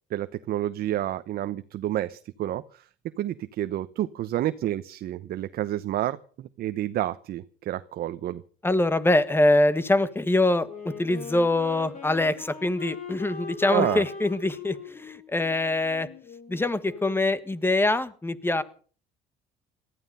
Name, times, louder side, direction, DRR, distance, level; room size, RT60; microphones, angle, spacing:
voice 1, 0.1-2.9 3.2-8.4 13.7-14.0, right 13 dB, 65° right, 12 dB, 0.9 m, -29 dB
voice 2, 8.6-16.1 16.5-18.6, left 2 dB, 15° left, 15 dB, 1.5 m, -24 dB
Wind instrument woodwind instrument, 10.6-17.3, left 5 dB, 45° left, 7.8 m, -40 dB
18.5 x 14.0 x 5.6 m, 0.42 s
cardioid pair, 110°, 17 cm